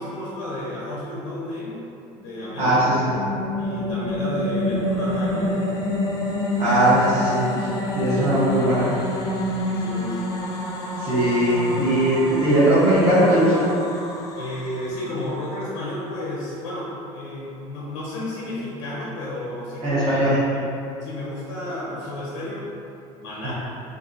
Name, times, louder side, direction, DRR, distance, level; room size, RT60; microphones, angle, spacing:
voice 1, 0.0-1.9 2.2-3.0 3.6-5.6 8.1-8.3 9.7-10.3 14.3-20.6 21.0-22.7 23.2-23.5, left 1 dB, 85° left, -6 dB, 0.5 m, -32 dB
sound 1, 2.2-15.6, left 1 dB, 25° left, 0.4 m, -28 dB
voice 2, 2.6-3.1 6.6-7.7 7.9-8.9 11.0-13.7 19.8-20.4 23.4-23.5, right 1 dB, 40° right, -11 dB, 0.8 m, -19 dB
2.6 x 2.4 x 2.4 m, 2.7 s
supercardioid pair, 100°, 16 cm